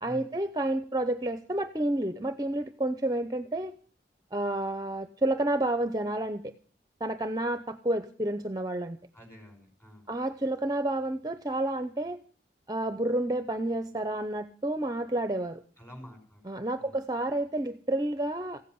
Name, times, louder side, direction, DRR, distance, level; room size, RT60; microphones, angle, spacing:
voice 1, 0.0-3.7 4.3-6.5 7.0-9.0 10.1-12.2 12.7-15.6 16.5-18.6, right 1 dB, 20° right, 10 dB, 0.7 m, -30 dB
voice 2, 9.1-10.2 15.8-16.4 16.8-17.1, equal, 15° left, 4 dB, 5.5 m, -48 dB
15.5 x 8.3 x 9.4 m, 0.43 s
head